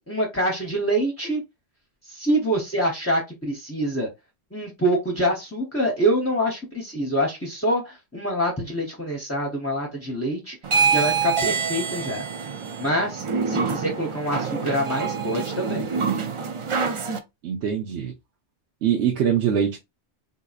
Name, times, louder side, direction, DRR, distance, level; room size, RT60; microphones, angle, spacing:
voice 1, 0.0-1.4 2.1-4.1 4.5-10.6 10.9-12.2 12.8-15.9, right 1 dB, 15° left, 0.6 m, -25 dB
sound 1, 10.6-17.2, right 5 dB, 55° right, 0.3 m, -26 dB
voice 2, 17.4-18.1 18.8-19.8, right 8 dB, 85° right, 0.9 m, -23 dB
3.9 x 2.7 x 2.4 m
omnidirectional pair, 1.1 m